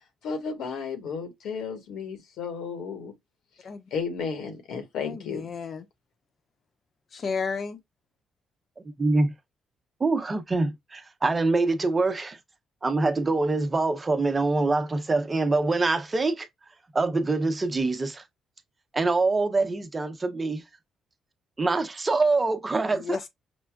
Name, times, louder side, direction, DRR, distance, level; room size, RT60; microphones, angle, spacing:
voice 1, 0.2-3.1 3.9-5.5, left 5 dB, 80° left, 1.3 m, -33 dB
voice 2, 5.0-5.8 7.1-7.8 22.9-23.3, left 5 dB, 50° left, 0.9 m, -32 dB
voice 3, 9.0-9.3 10.0-12.4 12.8-16.5 16.9-18.2 18.9-20.6 21.6-23.2, right 3 dB, 25° right, 0.8 m, -24 dB
5.4 x 2.2 x 2.3 m
cardioid pair, 90°, 0 cm